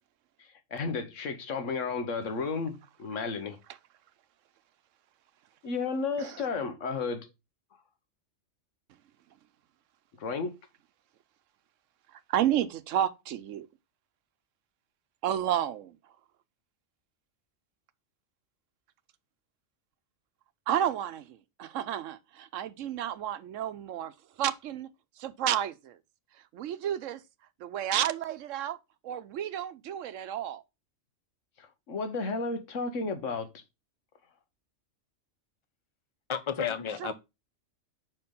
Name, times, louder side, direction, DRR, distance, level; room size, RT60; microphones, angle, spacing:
voice 1, 0.4-3.6 5.6-7.3 10.2-10.5 31.6-33.5, left 4 dB, 75° left, 1.4 m, -33 dB
voice 2, 12.3-13.7 15.2-16.0 20.7-24.1 24.4-24.9 25.2-26.0 26.5-27.2 27.6-28.8 29.0-30.6 37.0-37.1, right 10 dB, 80° right, 1.0 m, -31 dB
voice 3, 36.3-37.1, left 7 dB, 30° left, 0.6 m, -31 dB
5.5 x 4.5 x 5.3 m
omnidirectional pair, 1.3 m